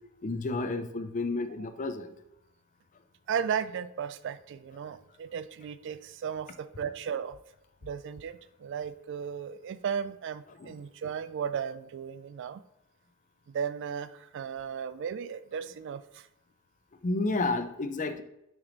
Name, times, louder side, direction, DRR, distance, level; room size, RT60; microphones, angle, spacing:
voice 1, 0.2-2.1 10.6-10.7 17.0-18.2, left 2 dB, 35° left, 9 dB, 0.5 m, -31 dB
voice 2, 3.3-7.4 7.8-12.6 13.5-16.2, right 7 dB, 55° right, 14 dB, 0.3 m, -35 dB
6.0 x 5.0 x 3.9 m, 0.84 s
head